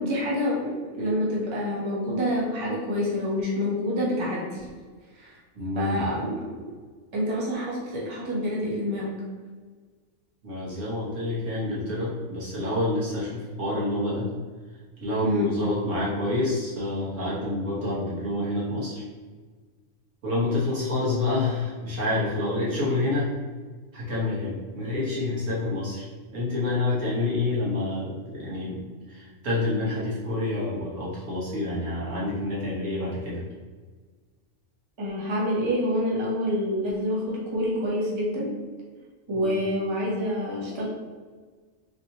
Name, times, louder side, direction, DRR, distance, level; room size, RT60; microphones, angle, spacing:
voice 1, 0.0-4.6 5.1-5.4 5.7-6.7 7.1-9.2 15.2-15.5 35.0-38.5 39.3-40.8, equal, 30° right, -5 dB, 0.6 m, -27 dB
voice 2, 5.5-6.1 10.4-14.3 15.0-19.0 20.2-23.3 23.9-33.4 39.3-39.6, left 2 dB, 65° right, -7 dB, 1.5 m, -28 dB
3.4 x 2.7 x 2.8 m, 1.5 s
omnidirectional pair, 1.4 m